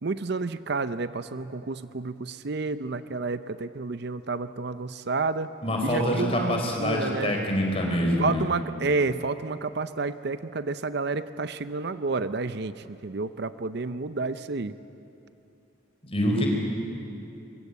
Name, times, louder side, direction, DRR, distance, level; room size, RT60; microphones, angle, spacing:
voice 1, 0.0-5.5 5.8-7.3 8.2-14.7, right 3 dB, 55° right, 12 dB, 0.6 m, -30 dB
voice 2, 5.6-8.4 16.0-16.5, equal, 30° left, 1 dB, 4.6 m, -25 dB
23.0 x 23.0 x 8.5 m, 2.7 s
head